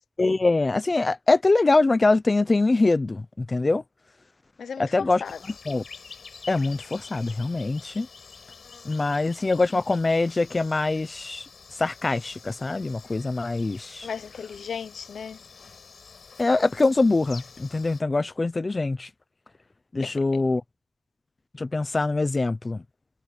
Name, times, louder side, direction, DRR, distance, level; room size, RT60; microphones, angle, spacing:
voice 1, 0.2-3.8 4.8-5.2 5.7-5.8 6.5-8.1 8.8-11.5 11.8-14.1 16.4-19.1 19.9-20.6 21.6-22.8, left 3 dB, 25° left, 0.6 m, -23 dB
voice 2, 4.6-5.4 14.0-15.4 20.0-20.4, left 6 dB, 70° left, 0.7 m, -36 dB
sound 1, 5.2-18.0, left 5 dB, 50° left, 7.4 m, -47 dB
wide cardioid pair, 150°, 0 cm